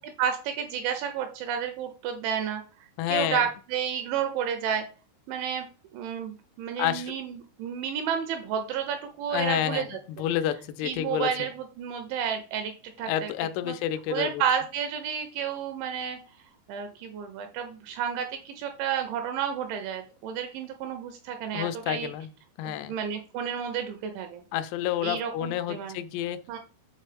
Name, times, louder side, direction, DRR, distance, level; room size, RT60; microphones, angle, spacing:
voice 1, 0.0-2.6 3.1-4.9 5.3-5.7 5.9-10.0 10.8-12.7 13.0-13.3 13.6-13.8 14.1-16.2 16.7-22.1 22.6-24.4 25.0-26.0 26.5-26.6, right 8 dB, 80° right, 6 dB, 2.8 m, -31 dB
voice 2, 3.0-3.5 6.8-7.1 9.3-11.5 13.0-14.4 21.5-22.3 22.6-23.0 24.5-26.4, left 12 dB, 90° left, 11 dB, 3.3 m, -29 dB
7.7 x 4.1 x 3.3 m, 0.36 s
omnidirectional pair, 5.9 m